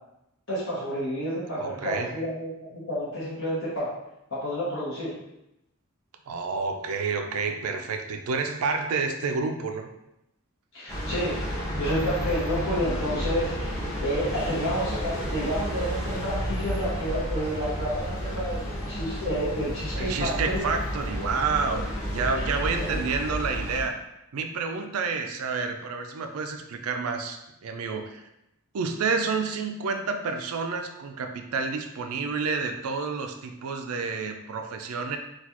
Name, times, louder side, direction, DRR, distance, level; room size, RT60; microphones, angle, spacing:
voice 1, 0.5-3.9 4.3-5.2 10.7-11.4 11.8-13.7 14.0-20.6 22.9-23.0, equal, 65° left, -10 dB, 1.0 m, -30 dB
voice 2, 1.6-2.2 6.3-9.9 19.9-24.0 24.3-28.2 28.7-35.2, right 4 dB, 85° right, 5 dB, 0.4 m, -29 dB
sound 1, 10.9-23.8, equal, 15° left, 0.9 m, -31 dB
4.0 x 2.3 x 2.9 m, 0.86 s
head